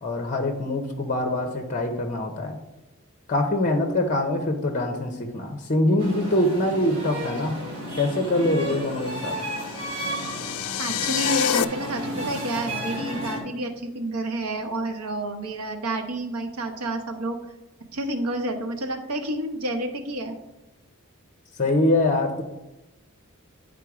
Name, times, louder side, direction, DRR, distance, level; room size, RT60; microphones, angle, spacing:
voice 1, 0.0-2.6 3.3-7.6 8.0-9.4 21.6-22.4, left 1 dB, 35° left, 5 dB, 0.7 m, -24 dB
sound 1, 6.0-13.4, right 1 dB, 30° right, 2.4 m, -32 dB
sound 2, 9.1-11.6, left 12 dB, 85° left, 0.3 m, -28 dB
voice 2, 10.8-17.4 17.9-20.4, right 1 dB, 80° right, 5 dB, 1.0 m, -29 dB
10.0 x 3.7 x 4.9 m, 0.98 s
head